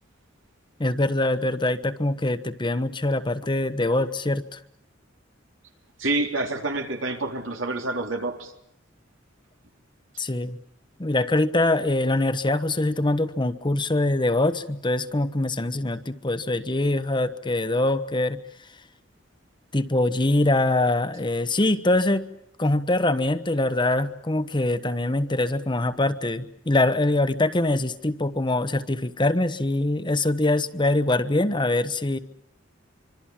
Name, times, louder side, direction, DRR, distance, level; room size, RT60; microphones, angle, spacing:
voice 1, 0.8-4.6 10.2-10.6 11.0-18.4 19.7-22.2 22.6-32.2, left 2 dB, 25° left, 11 dB, 1.1 m, -23 dB
voice 2, 6.0-8.5, right 2 dB, 85° right, 3 dB, 3.7 m, -27 dB
25.5 x 25.0 x 7.3 m, 0.77 s
head